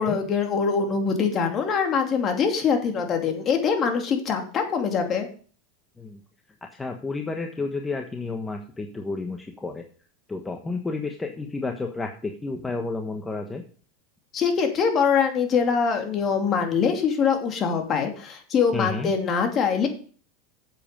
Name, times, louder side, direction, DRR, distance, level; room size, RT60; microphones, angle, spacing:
voice 1, 0.0-5.3 14.3-19.9, left 6 dB, 35° left, 4 dB, 2.7 m, -23 dB
voice 2, 6.7-9.8 10.3-13.6 18.7-19.1, left 3 dB, 15° left, 4 dB, 1.2 m, -31 dB
8.7 x 7.6 x 5.2 m, 0.41 s
hypercardioid pair, 105°, 0 cm